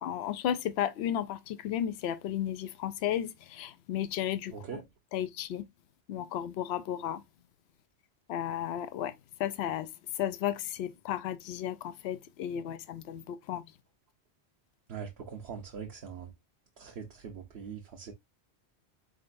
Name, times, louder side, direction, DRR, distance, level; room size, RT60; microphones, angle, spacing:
voice 1, 0.0-4.5 5.1-5.6 6.1-7.2 8.3-9.1 9.4-9.9 10.2-13.6, left 10 dB, 75° left, 0.8 m, -33 dB
voice 2, 4.5-4.8 14.9-16.3 16.8-18.1, right 6 dB, 70° right, 1.0 m, -42 dB
4.3 x 3.8 x 2.5 m
omnidirectional pair, 1.1 m